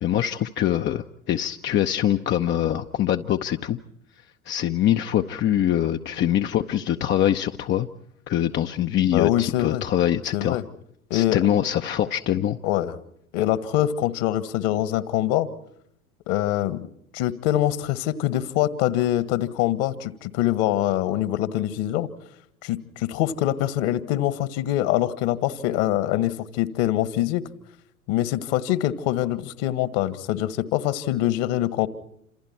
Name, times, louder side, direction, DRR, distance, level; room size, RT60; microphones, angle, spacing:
voice 1, 0.0-3.8 4.5-7.9 8.3-10.6 11.1-12.6, left 11 dB, 25° left, 6 dB, 0.8 m, -23 dB
voice 2, 9.1-9.8 10.3-10.6 11.1-11.4 12.6-12.9 13.3-15.5 16.3-16.9 17.1-22.1 22.6-27.4 28.1-31.9, left 13 dB, 50° left, 14 dB, 1.7 m, -24 dB
29.0 x 27.0 x 4.5 m, 0.73 s
figure-of-eight pair, 85°, 43 cm